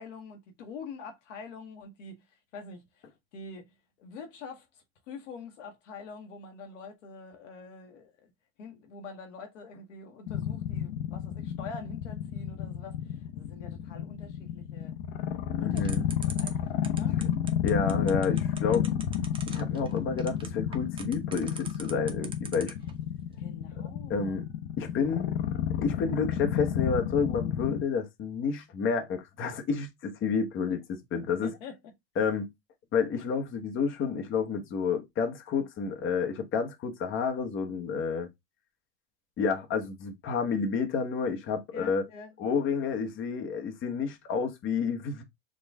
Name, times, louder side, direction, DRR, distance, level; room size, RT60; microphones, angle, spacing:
voice 1, 0.0-2.2 2.5-3.1 3.3-3.7 4.0-8.3 8.6-14.9 15.6-17.2 23.4-24.4 31.4-31.8 41.7-42.3, left 4 dB, 90° left, 1.1 m, -45 dB
sound 1, 10.3-27.8, left 10 dB, 60° left, 0.7 m, -31 dB
voice 2, 15.6-16.1 17.6-18.9 19.5-22.7 24.1-24.4 24.8-25.3 25.8-31.5 32.2-32.5 32.9-38.3 39.4-42.1 42.4-45.2, left 5 dB, 35° left, 0.9 m, -30 dB
sound 2, 15.8-22.9, right 5 dB, 15° right, 0.6 m, -42 dB
4.4 x 2.4 x 3.3 m
supercardioid pair, 115°, 35 cm